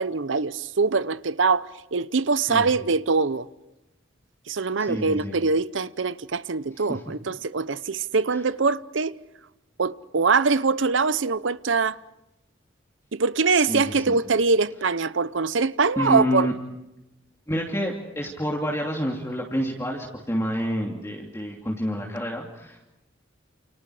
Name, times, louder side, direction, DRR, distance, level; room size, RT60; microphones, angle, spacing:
voice 1, 0.0-3.5 4.5-9.2 9.8-12.0 13.1-16.5, right 4 dB, 75° right, 0.8 m, -23 dB
voice 2, 4.8-5.4 6.7-7.0 8.3-8.4 13.5-14.2 16.0-16.5 17.5-22.9, equal, 15° left, 2.9 m, -28 dB
29.0 x 28.5 x 5.0 m
head